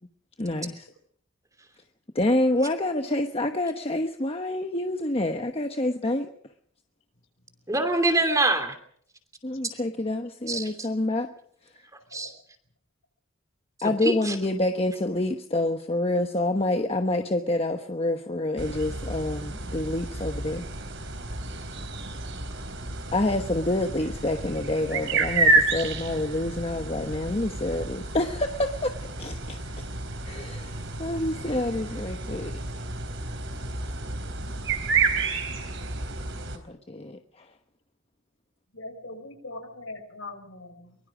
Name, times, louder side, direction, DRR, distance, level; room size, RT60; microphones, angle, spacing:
voice 1, 0.4-0.9 2.1-6.3 9.4-11.3 13.8-20.7 23.1-28.9 29.2-29.8 30.2-32.5 36.5-37.5, left 1 dB, 30° left, 6 dB, 1.1 m, -27 dB
voice 2, 7.7-8.7 10.5-10.7 12.1-12.3 13.8-14.3, right 2 dB, 15° right, 7 dB, 2.9 m, -24 dB
sound 1, 18.6-36.6, right 3 dB, 60° right, 3.8 m, -30 dB
voice 3, 38.7-41.0, left 2 dB, 75° left, 6 dB, 5.7 m, -41 dB
23.5 x 22.0 x 5.0 m, 0.63 s
head